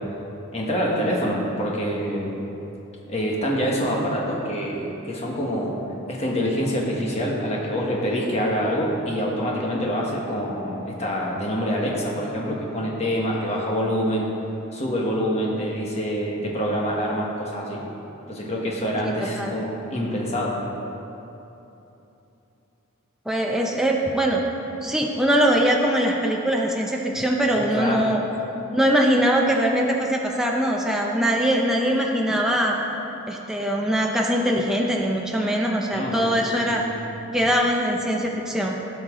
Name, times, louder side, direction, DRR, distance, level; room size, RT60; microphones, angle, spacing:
voice 1, 0.5-2.4 3.1-5.8 6.1-14.3 14.7-17.8 18.3-20.6 27.6-28.1 35.9-36.4 36.7-36.8 38.2-38.3, equal, 30° left, -3 dB, 1.4 m, -26 dB
voice 2, 19.2-19.5 23.3-24.4 24.8-28.2 28.7-32.8 33.3-36.8 37.3-38.8, equal, ahead, -1 dB, 0.6 m, -22 dB
16.5 x 5.9 x 3.8 m, 3.0 s
head